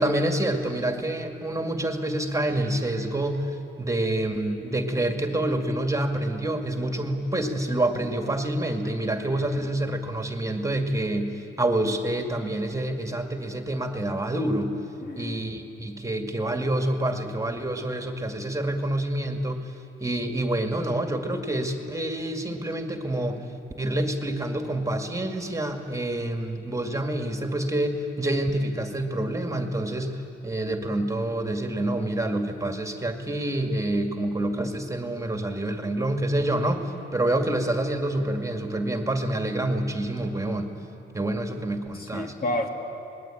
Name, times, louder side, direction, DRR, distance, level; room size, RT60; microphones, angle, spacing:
voice 1, 0.0-14.7 15.2-19.8 20.0-23.4 23.8-40.7 41.1-42.3, right 1 dB, 15° right, 4 dB, 2.1 m, -27 dB
voice 2, 9.1-9.8 15.0-15.4 41.9-42.7, left 1 dB, 50° left, 2 dB, 2.8 m, -32 dB
25.0 x 20.5 x 9.0 m, 2.9 s
cardioid pair, 90°, 20 cm